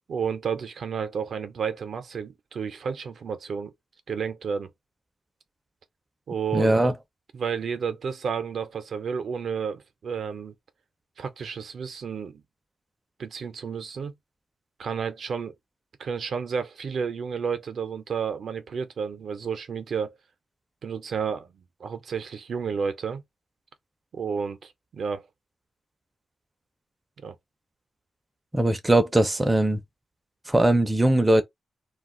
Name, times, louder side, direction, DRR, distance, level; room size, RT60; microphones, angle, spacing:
voice 1, 0.1-3.7 4.1-4.7 6.3-6.7 7.3-10.5 11.2-12.4 13.2-14.1 14.8-15.5 16.0-20.1 20.8-23.2 24.1-25.3 27.2-27.4, right 6 dB, 65° right, 0.6 m, -31 dB
voice 2, 6.5-6.9 28.5-29.8 30.5-31.4, right 1 dB, 10° right, 0.4 m, -20 dB
2.4 x 2.3 x 3.7 m
wide cardioid pair, 135°, 0 cm